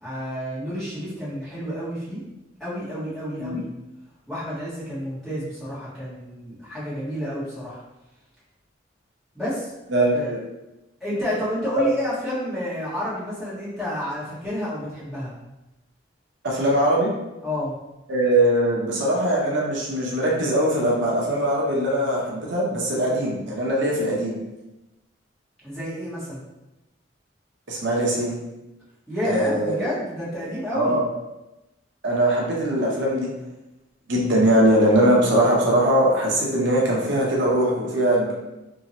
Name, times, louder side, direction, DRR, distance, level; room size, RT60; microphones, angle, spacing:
voice 1, 0.0-2.2 2.6-3.7 4.3-7.8 9.3-9.7 10.1-10.3 11.0-15.3 17.4-17.7 25.6-26.4 29.1-31.0, equal, ahead, -13 dB, 1.4 m, -30 dB
voice 2, 9.9-10.4 11.8-11.9 16.4-17.1 18.1-24.4 27.7-28.4 29.2-29.8 30.7-31.0 32.0-33.3 34.1-38.3, right 1 dB, 80° right, -3 dB, 0.7 m, -21 dB
2.8 x 2.8 x 2.8 m, 0.99 s
head